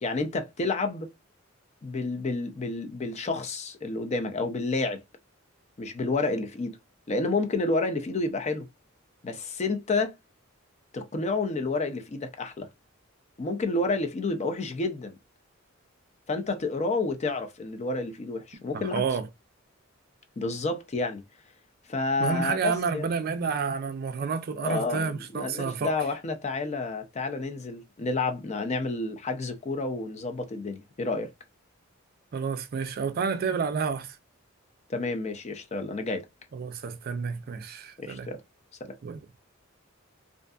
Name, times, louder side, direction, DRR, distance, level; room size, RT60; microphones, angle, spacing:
voice 1, 0.0-1.1 1.8-5.0 5.8-6.8 7.1-8.7 9.2-10.1 10.9-12.7 13.4-15.2 16.3-19.0 20.4-21.2 21.9-23.1 24.6-31.3 34.9-36.3 38.0-38.4 38.8-39.0, left 3 dB, 35° left, 0.4 m, -30 dB
voice 2, 18.9-19.3 22.2-25.9 32.3-34.2 36.5-38.3 39.0-39.2, right 5 dB, 50° right, 0.4 m, -30 dB
2.5 x 2.5 x 2.3 m
head